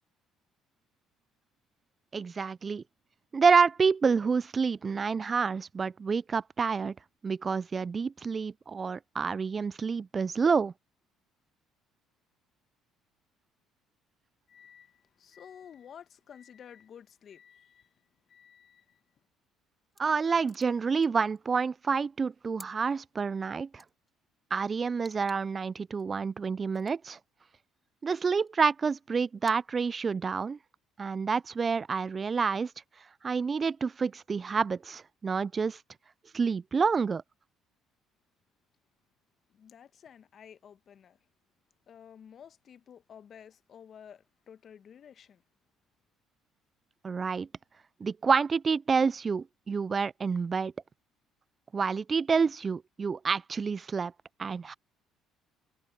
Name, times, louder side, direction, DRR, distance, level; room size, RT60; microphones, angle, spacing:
voice 1, 2.1-2.8 3.3-6.9 7.2-10.7 20.0-23.8 24.5-27.2 28.0-30.6 31.0-32.7 33.2-35.8 36.3-37.2 47.0-47.5 48.0-50.7 51.7-54.1 54.4-54.7, right 5 dB, 35° right, 0.4 m, -28 dB
voice 2, 14.5-19.0 39.5-41.2 41.9-45.4, left 8 dB, 50° left, 1.3 m, -52 dB
sound 1, 19.8-20.0 20.3-21.7 22.0-22.7 23.8-24.1 25.0-25.3 25.7-26.0 26.7-26.9 28.0-28.5 29.4-29.5, left 1 dB, 10° left, 2.9 m, -55 dB
hypercardioid pair, 60°, 0 cm